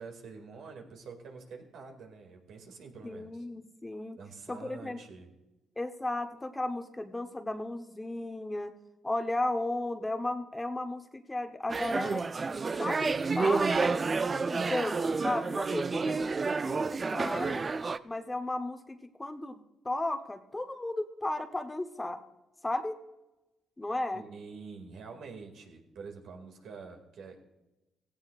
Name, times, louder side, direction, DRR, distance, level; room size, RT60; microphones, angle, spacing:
voice 1, 0.0-3.4 4.2-5.3 24.1-27.4, right 4 dB, 75° right, 3 dB, 2.3 m, -46 dB
voice 2, 3.0-4.2 4.5-5.0 5.8-8.7 9.0-12.2 12.8-14.0 14.5-16.4 16.6-17.6 18.0-19.6 19.8-22.2 22.6-23.0 23.8-24.2, left 2 dB, 15° left, 6 dB, 1.0 m, -34 dB
sound 1, 11.7-18.0, right 4 dB, 35° right, 0.4 m, -30 dB
17.0 x 16.0 x 2.5 m, 1.0 s
cardioid pair, 90°, 0 cm